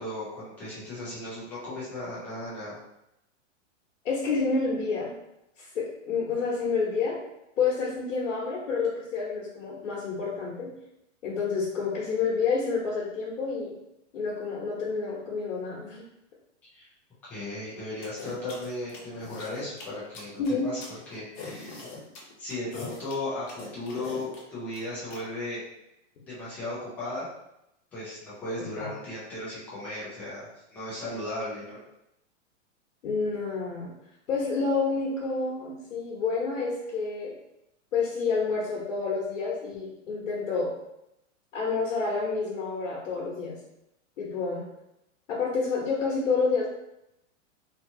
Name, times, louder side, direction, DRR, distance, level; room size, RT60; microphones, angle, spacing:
voice 1, 0.0-2.8 16.7-16.9 17.3-20.8 21.1-21.8 22.4-25.6 26.3-27.3 27.9-31.8, left 1 dB, 5° left, -9 dB, 0.3 m, -36 dB
voice 2, 4.0-5.1 5.6-7.2 7.6-10.7 11.2-13.7 14.1-16.0 20.4-20.7 28.8-28.9 33.0-33.9 34.3-37.3 37.9-40.7 41.5-43.6 44.2-44.6 45.3-46.7, left 4 dB, 80° left, -6 dB, 1.0 m, -29 dB
sound 1, 18.0-25.2, left 3 dB, 40° left, 0.7 m, -42 dB
2.8 x 2.4 x 2.6 m, 0.84 s
hypercardioid pair, 150°, 37 cm